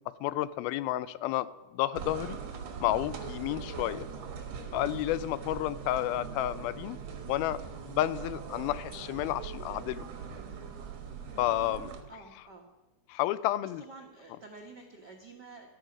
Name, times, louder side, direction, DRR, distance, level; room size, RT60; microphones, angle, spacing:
voice 1, 0.2-2.4 2.8-4.1 4.7-7.0 7.3-7.6 7.9-10.0 11.4-11.9 13.1-13.8, left 14 dB, 90° left, 16 dB, 2.5 m, -31 dB
sound 1, 2.0-12.0, right 6 dB, 55° right, 2.1 m, -41 dB
voice 2, 12.1-12.7 13.6-15.7, right 3 dB, 90° right, 1 dB, 0.9 m, -49 dB
14.0 x 12.5 x 6.0 m, 1.1 s
omnidirectional pair, 4.2 m